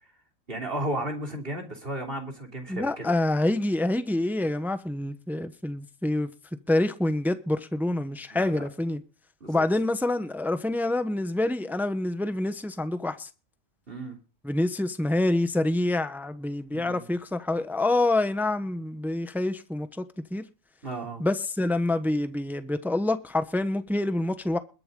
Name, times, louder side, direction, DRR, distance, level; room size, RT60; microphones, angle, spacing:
voice 1, 0.5-3.1 8.3-8.7 9.4-9.6 13.9-14.2 16.7-17.0 20.8-21.2, right 1 dB, 45° right, 3.3 m, -34 dB
voice 2, 2.7-6.3 6.7-9.0 9.5-13.3 14.4-20.0 20.3-20.4 21.2-24.6, left 2 dB, ahead, 0.9 m, -27 dB
22.0 x 8.0 x 3.8 m
omnidirectional pair, 1.4 m